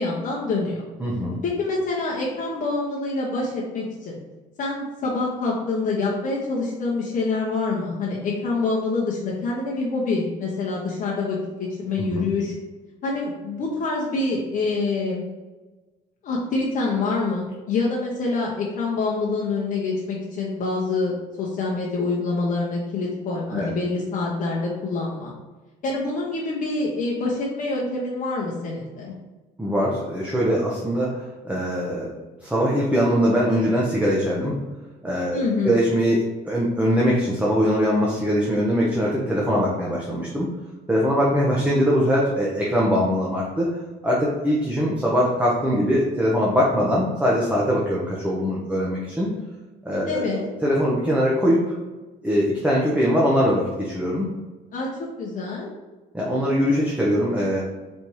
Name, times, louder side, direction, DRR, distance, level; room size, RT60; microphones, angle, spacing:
voice 1, 0.0-0.8 1.4-4.2 4.6-12.5 13.0-15.2 16.2-21.1 21.4-25.3 25.8-29.1 35.3-35.8 50.0-50.5 54.7-54.9 55.2-55.7, left 3 dB, 55° left, -4 dB, 0.9 m, -26 dB
voice 2, 1.0-1.4 12.0-12.2 23.5-23.7 29.6-32.1 32.4-34.6 35.0-40.5 40.9-43.8 44.0-49.3 49.8-51.7 52.2-54.3 56.1-57.6, equal, 10° right, -5 dB, 0.8 m, -22 dB
4.3 x 3.4 x 3.0 m, 1.2 s
cardioid pair, 110°, 17 cm